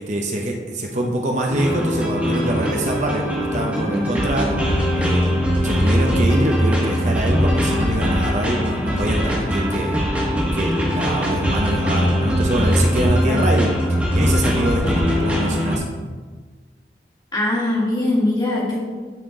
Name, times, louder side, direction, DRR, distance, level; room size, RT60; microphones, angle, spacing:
voice 1, 0.0-4.7 5.0-5.3 5.6-10.0 10.5-15.8, right 1 dB, 40° right, 1 dB, 0.7 m, -24 dB
sound 1, 1.5-15.8, equal, 10° right, 1.3 m, -21 dB
voice 2, 17.3-18.8, left 1 dB, 25° left, -4 dB, 1.8 m, -21 dB
12.0 x 4.3 x 3.8 m, 1.4 s
head